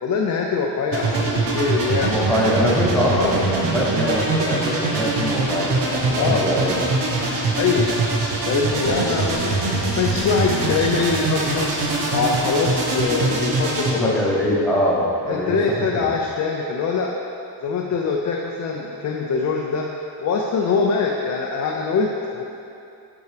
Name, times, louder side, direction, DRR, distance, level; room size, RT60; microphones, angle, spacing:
voice 1, 0.0-2.1 3.1-3.4 6.2-6.5 7.6-7.9 8.5-11.7 12.1-14.1 15.3-17.1 17.6-19.9 20.2-22.4, left 5 dB, 45° left, -1 dB, 0.5 m, -23 dB
sound 1, 0.9-13.9, right 3 dB, 75° right, 1.2 m, -23 dB
voice 2, 2.0-7.0 8.7-9.4 13.9-16.1, equal, ahead, -5 dB, 1.0 m, -23 dB
8.2 x 4.6 x 3.3 m, 2.7 s
cardioid pair, 145°, 43 cm